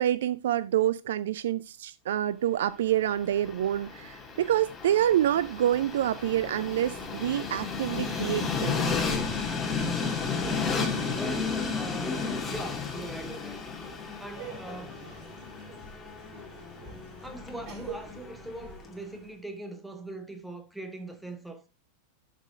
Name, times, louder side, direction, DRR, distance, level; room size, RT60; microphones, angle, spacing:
voice 1, 0.0-8.8, right 11 dB, 60° right, 0.3 m, -27 dB
Train, 2.9-19.0, left 4 dB, 15° left, 2.2 m, -33 dB
voice 2, 11.1-12.2 12.5-13.7 14.2-15.0 17.2-21.7, right 2 dB, 5° right, 1.5 m, -41 dB
Laughter, 14.3-19.4, right 5 dB, 35° right, 3.6 m, -46 dB
12.0 x 5.1 x 3.6 m
figure-of-eight pair, 90°, 0 cm